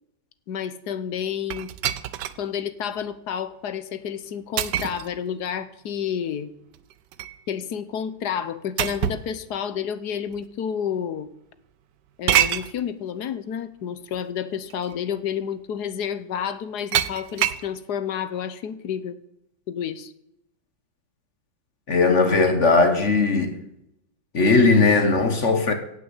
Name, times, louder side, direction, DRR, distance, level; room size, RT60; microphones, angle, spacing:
voice 1, 0.5-1.7 2.4-6.5 7.5-11.3 12.2-19.2 19.7-20.1, left 8 dB, 65° left, 1.3 m, -30 dB
sound 1, 1.5-2.4 3.0-3.1 4.6-5.1 6.7-7.4 8.8-9.3 10.3-10.4 12.3-12.7 14.1-14.2 14.7-15.0 16.9-17.7, right 11 dB, 70° right, 1.3 m, -25 dB
voice 2, 21.9-23.6 24.3-25.7, left 3 dB, 45° left, 1.5 m, -18 dB
16.5 x 6.3 x 8.1 m
omnidirectional pair, 2.0 m